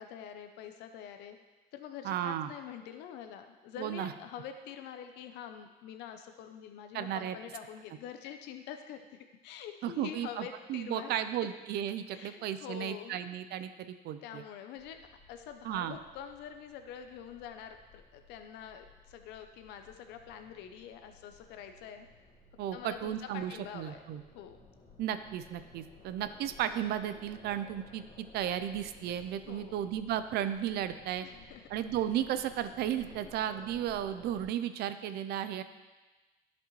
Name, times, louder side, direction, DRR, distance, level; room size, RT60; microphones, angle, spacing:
voice 1, 0.0-1.4 1.7-11.1 12.1-13.2 14.2-15.0 15.3-22.1 22.7-24.6 29.4-29.8 31.2-31.7 33.2-33.3, left 8 dB, 90° left, 7 dB, 0.6 m, -46 dB
voice 2, 2.0-2.5 3.8-4.1 6.9-7.4 9.8-14.4 15.6-16.0 22.6-24.2 25.0-31.3 31.7-35.6, right 10 dB, 75° right, 11 dB, 0.5 m, -34 dB
sound 1, 14.8-34.5, left 3 dB, 40° left, 2.6 m, -57 dB
11.5 x 5.3 x 3.1 m, 1.2 s
cardioid pair, 110°, 17 cm